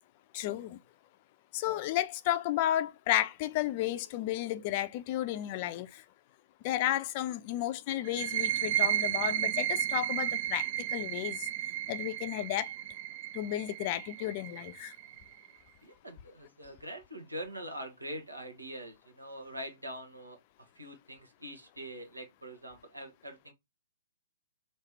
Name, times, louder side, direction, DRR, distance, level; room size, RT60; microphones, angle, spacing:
voice 1, 0.3-0.8 1.5-6.0 6.6-11.5 11.9-12.7 13.3-14.9, left 13 dB, 40° left, 0.5 m, -32 dB
sound 1, 8.0-15.5, right 12 dB, 40° right, 0.3 m, -33 dB
voice 2, 15.8-20.4 20.7-23.5, equal, 90° right, 1.5 m, -43 dB
3.2 x 3.2 x 4.5 m
figure-of-eight pair, 120°, 0 cm